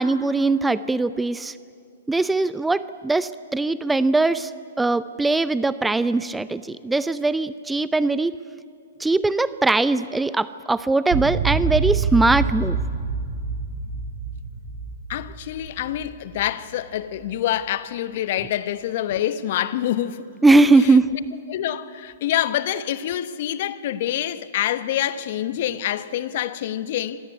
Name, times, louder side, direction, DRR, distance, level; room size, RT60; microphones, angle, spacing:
voice 1, 0.0-1.6 2.1-4.5 4.8-8.3 9.0-12.8 20.4-21.1, right 3 dB, 5° right, 0.5 m, -20 dB
sound 1, 11.1-16.5, right 5 dB, 45° right, 7.5 m, -26 dB
voice 2, 15.1-20.3 20.8-21.2 21.5-27.2, left 12 dB, 50° left, 1.1 m, -26 dB
25.5 x 18.0 x 9.6 m
figure-of-eight pair, 120°, 0 cm